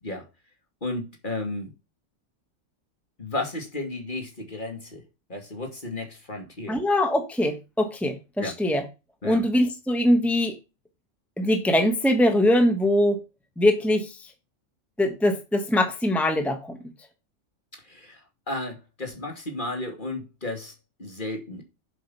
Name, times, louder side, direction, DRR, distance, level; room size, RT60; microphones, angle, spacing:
voice 1, 0.8-1.7 3.2-5.0 5.3-6.8 8.4-8.5 9.2-9.4 17.8-20.7 21.0-21.6, left 2 dB, 40° left, 2.6 m, -33 dB
voice 2, 6.7-8.8 9.2-10.5 11.4-13.2 13.6-14.3 15.0-16.8, left 1 dB, ahead, 1.5 m, -22 dB
7.8 x 6.8 x 5.7 m
omnidirectional pair, 1.3 m